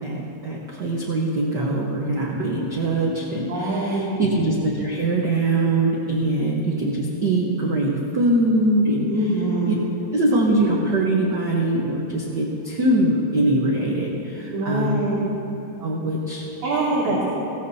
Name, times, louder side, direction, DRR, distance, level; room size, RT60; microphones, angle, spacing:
voice 1, 0.0-9.1 9.6-9.7 10.1-15.0 15.8-16.5 17.0-17.2, right 1 dB, 85° right, -2 dB, 0.9 m, -22 dB
voice 2, 3.5-4.2 9.0-9.7 14.5-15.3 16.6-17.3, right 2 dB, 65° right, -9 dB, 3.9 m, -24 dB
20.5 x 17.5 x 2.8 m, 3.0 s
omnidirectional pair, 3.7 m